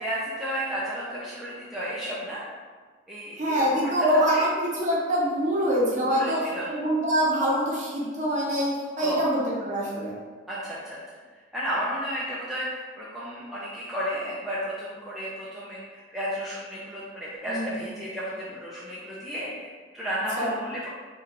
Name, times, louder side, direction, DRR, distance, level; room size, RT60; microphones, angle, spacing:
voice 1, 0.0-2.4 3.1-3.9 4.3-4.5 6.1-6.7 9.0-9.2 10.5-11.0 11.5-20.9, equal, ahead, -9 dB, 0.3 m, -33 dB
voice 2, 3.4-6.4 6.7-10.1 17.4-17.9 20.4-20.6, equal, 35° right, -5 dB, 0.7 m, -25 dB
2.9 x 2.3 x 3.6 m, 1.5 s
head